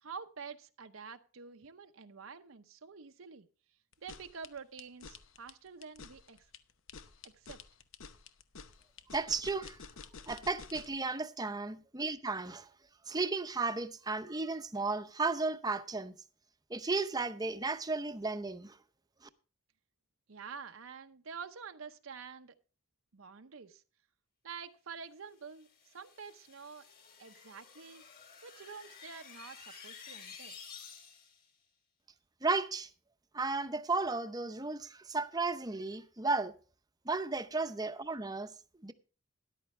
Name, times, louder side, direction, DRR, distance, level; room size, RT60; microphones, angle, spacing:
voice 1, 0.0-3.5 4.0-6.5 7.4-7.6 20.3-22.6 23.1-23.8 24.4-26.9 27.2-28.0 28.4-30.6, right 6 dB, 80° right, 0.8 m, -48 dB
sound 1, 3.9-11.0, left 5 dB, 70° left, 0.8 m, -50 dB
voice 2, 9.1-9.8 10.3-12.7 13.1-16.1 16.7-18.8 32.4-32.9 33.3-36.5 37.0-38.5 38.8-38.9, right 3 dB, 20° right, 0.7 m, -34 dB
sound 2, 25.5-31.5, left 6 dB, 45° left, 3.8 m, -52 dB
13.5 x 11.0 x 3.2 m
head